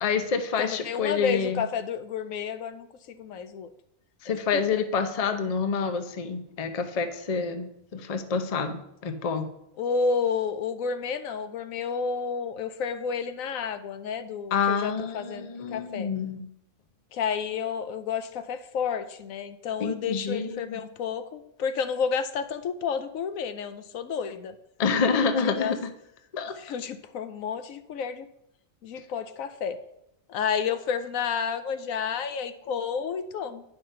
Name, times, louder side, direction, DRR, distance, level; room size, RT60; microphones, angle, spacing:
voice 1, 0.0-1.6 4.2-9.5 14.5-16.4 19.8-20.8 24.8-25.9 26.3-26.6, left 5 dB, 35° left, 8 dB, 0.6 m, -28 dB
voice 2, 0.6-3.7 4.7-4.8 9.8-16.1 17.1-24.6 25.4-25.7 26.6-28.3 28.8-29.8 30.3-33.6, left 6 dB, 80° left, 11 dB, 1.1 m, -31 dB
9.4 x 5.8 x 5.4 m, 0.78 s
omnidirectional pair, 1.4 m